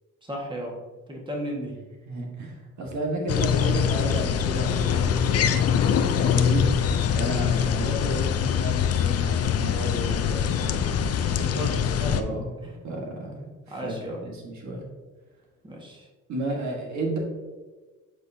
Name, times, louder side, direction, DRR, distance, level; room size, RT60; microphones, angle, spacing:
voice 1, 0.2-0.8 1.1-1.7 7.6-7.8 11.3-12.2 12.6-12.7 13.7-14.2 15.6-16.1, equal, 15° right, -1 dB, 1.5 m, -34 dB
voice 2, 2.1-6.7 7.1-10.9 12.1-12.5 12.8-14.8 16.3-17.2, right 1 dB, 65° right, 0 dB, 1.4 m, -32 dB
sound 1, 3.3-12.2, left 8 dB, 55° left, 0.5 m, -23 dB
8.1 x 4.4 x 2.7 m, 1.3 s
cardioid pair, 90°, 30 cm